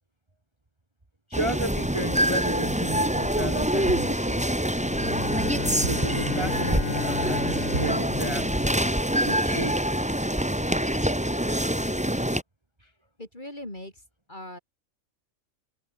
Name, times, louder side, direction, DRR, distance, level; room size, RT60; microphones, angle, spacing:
sound 1, 1.3-12.4, equal, 5° right, 2.1 m, -25 dB
voice 1, 1.3-4.4 5.8-8.7 9.2-9.8 12.8-12.9, right 1 dB, 20° right, 2.1 m, -33 dB
sound 2, 3.9-4.3 5.8-6.2 7.7-8.1, right 4 dB, 75° right, 3.0 m, -33 dB
Bowed string instrument, 4.8-9.4, left 6 dB, 65° left, 2.0 m, -35 dB
voice 2, 13.2-14.0 14.3-14.6, left 1 dB, 35° left, 5.7 m, -39 dB
open air
omnidirectional pair, 1.4 m